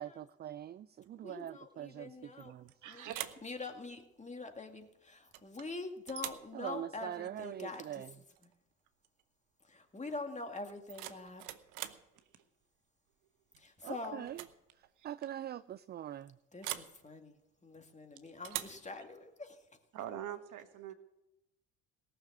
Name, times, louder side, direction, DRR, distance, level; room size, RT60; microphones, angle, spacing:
voice 1, 0.0-2.7 6.5-8.1 13.8-14.4 15.0-16.3, right 11 dB, 30° right, 16 dB, 0.4 m, -43 dB
voice 2, 1.2-2.5 2.9-3.1 3.4-8.2 8.4-8.5 9.6-11.5 13.6-14.3 16.5-19.7, left 3 dB, 20° left, 5 dB, 2.2 m, -45 dB
sound 1, 2.4-2.7 3.1-3.5 5.3-5.7 6.1-6.5 8.4-8.5 8.9-9.2 10.7-12.1 13.5-13.8 14.2-14.6 14.8-14.9 16.6-17.0 18.4-18.8, right 15 dB, 75° right, 0.8 m, -43 dB
voice 3, 2.8-3.3 12.1-12.2 15.0-15.1 19.9-20.9, right 11 dB, 60° right, 9 dB, 1.3 m, -43 dB
18.0 x 6.7 x 7.3 m, 0.92 s
hypercardioid pair, 55°, 34 cm